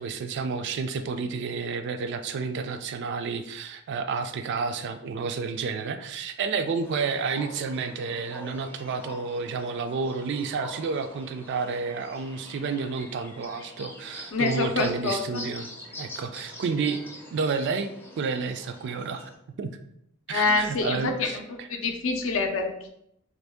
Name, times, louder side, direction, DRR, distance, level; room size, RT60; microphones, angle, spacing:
voice 1, 0.0-15.7 16.0-17.0 17.3-19.3 19.6-19.7 20.3-21.7, right 5 dB, 55° right, 9 dB, 0.3 m, -30 dB
sound 1, 6.8-19.3, left 1 dB, 10° left, 0.5 m, -44 dB
voice 2, 14.3-15.4 20.3-22.9, left 3 dB, 65° left, 5 dB, 0.5 m, -26 dB
3.0 x 2.6 x 3.4 m, 0.76 s
head